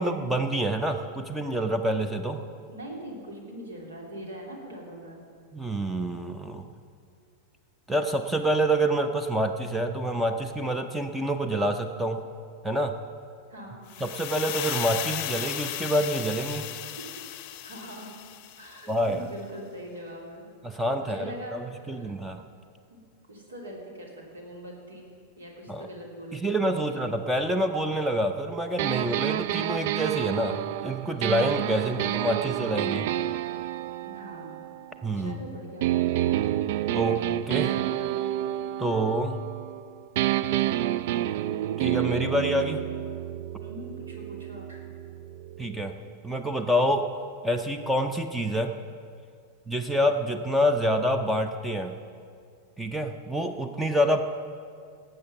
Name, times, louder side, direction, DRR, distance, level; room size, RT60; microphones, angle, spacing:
voice 1, 0.0-2.4 5.5-6.7 7.9-12.2 12.6-12.9 14.0-16.7 18.9-19.3 20.6-21.3 21.9-22.4 25.7-25.9 26.3-33.1 35.0-35.5 36.9-37.8 38.8-39.4 41.8-42.8 45.6-45.9 46.2-47.1 47.4-48.7 49.7-52.0 52.8-54.2, right 1 dB, 5° right, 7 dB, 0.7 m, -27 dB
voice 2, 2.7-5.2 13.5-13.9 17.6-18.1 18.6-20.5 21.0-22.4 22.9-23.0 23.3-27.1 34.0-34.6 35.1-35.9 43.6-44.8, equal, 65° right, -1 dB, 3.1 m, -42 dB
sound 1, 13.9-18.9, left 13 dB, 45° left, 0.7 m, -35 dB
sound 2, 28.8-35.3 35.8-39.8 40.2-45.9, right 13 dB, 50° right, 0.3 m, -29 dB
18.5 x 7.9 x 5.7 m, 2.2 s
figure-of-eight pair, 90°, 0 cm